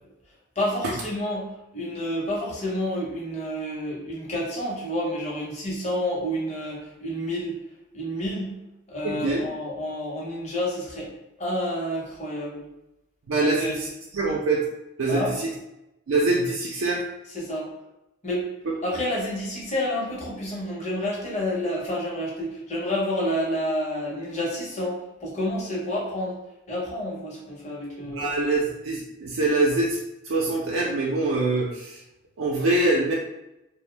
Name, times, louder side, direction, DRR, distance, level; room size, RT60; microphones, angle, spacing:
voice 1, 0.6-7.6 7.9-8.6 8.9-11.1 11.4-12.6 13.4-13.7 15.1-15.3 17.3-17.7 18.2-18.5 18.8-26.4 26.7-28.3, left 1 dB, 35° left, -4 dB, 0.8 m, -29 dB
voice 2, 9.0-9.4 13.3-13.9 14.1-14.6 15.0-15.5 16.1-17.0 28.0-30.0 30.2-32.0 32.4-33.1, right 2 dB, 90° right, -3 dB, 0.5 m, -24 dB
2.6 x 2.0 x 3.2 m, 0.91 s
head